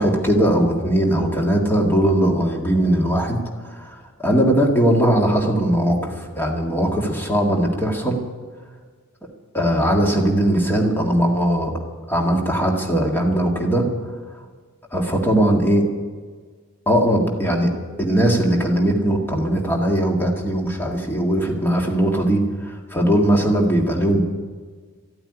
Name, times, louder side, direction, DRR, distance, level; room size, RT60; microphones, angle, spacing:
voice 1, 0.0-3.4 3.6-8.2 9.5-11.7 12.1-13.9 14.9-15.9 16.9-17.7 18.0-24.2, right 1 dB, 10° left, 0 dB, 1.8 m, -19 dB
14.0 x 8.9 x 9.8 m, 1.5 s
head